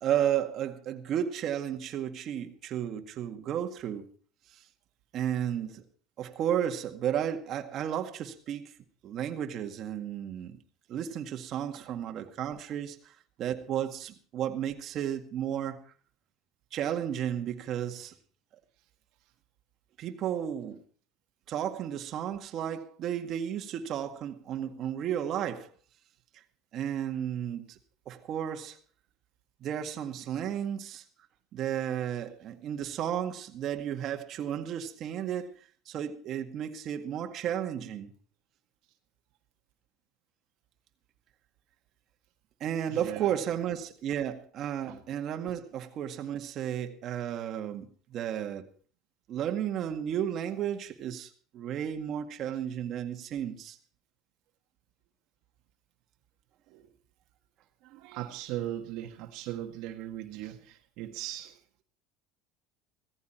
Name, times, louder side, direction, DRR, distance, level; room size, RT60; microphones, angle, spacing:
voice 1, 0.0-4.1 5.1-5.8 6.2-8.7 9.0-10.6 10.9-15.9 16.7-18.1 20.0-20.8 21.5-25.7 26.7-27.8 28.1-28.8 29.6-31.0 31.5-35.5 35.9-38.1 42.6-48.7 49.3-53.8, right 10 dB, 50° right, 2.0 m, -33 dB
voice 2, 42.9-43.3 44.8-45.0 56.7-56.9 57.8-61.6, right 13 dB, 70° right, 1.7 m, -39 dB
17.0 x 15.0 x 4.4 m
supercardioid pair, 115°, 0 cm